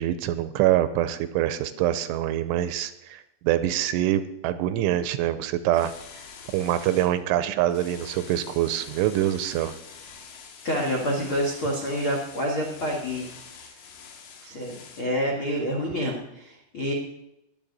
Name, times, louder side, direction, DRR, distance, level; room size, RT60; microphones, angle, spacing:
voice 1, 0.0-5.9 6.5-9.7, right 12 dB, 85° right, 12 dB, 3.0 m, -25 dB
sound 1, 5.7-7.1 7.7-15.0, left 6 dB, 70° left, 3.8 m, -45 dB
voice 2, 10.6-13.3 14.4-16.9, equal, 85° left, 0 dB, 1.1 m, -28 dB
21.5 x 8.2 x 4.1 m, 0.88 s
omnidirectional pair, 5.7 m